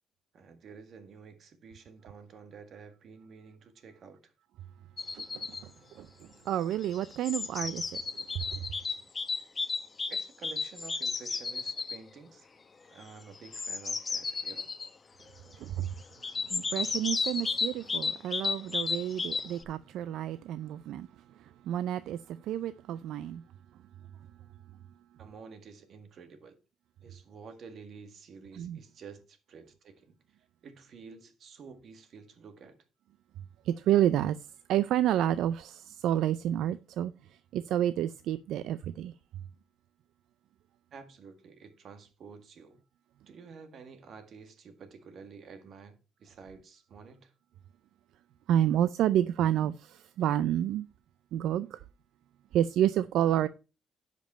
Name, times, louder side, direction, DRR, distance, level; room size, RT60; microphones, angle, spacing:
voice 1, 0.3-4.3 10.1-12.5 12.9-14.7 15.7-15.9 25.2-26.6 27.0-30.2 30.6-32.8 40.9-42.8 43.3-47.3, right 5 dB, 60° right, 1.7 m, -50 dB
sound 1, 5.0-5.6 6.7-12.0 13.3-14.9 16.2-19.6, left 4 dB, 35° left, 0.9 m, -33 dB
voice 2, 5.1-5.7 6.0-6.1 6.5-8.0 8.3-8.6 15.6-15.9 16.5-21.1 21.4-23.4 28.5-28.8 33.6-34.4 34.7-37.1 37.5-39.1 48.5-50.9 51.3-51.8 52.5-53.5, right 11 dB, 85° right, 0.4 m, -29 dB
10.5 x 5.3 x 4.3 m
cardioid pair, 90°, 0 cm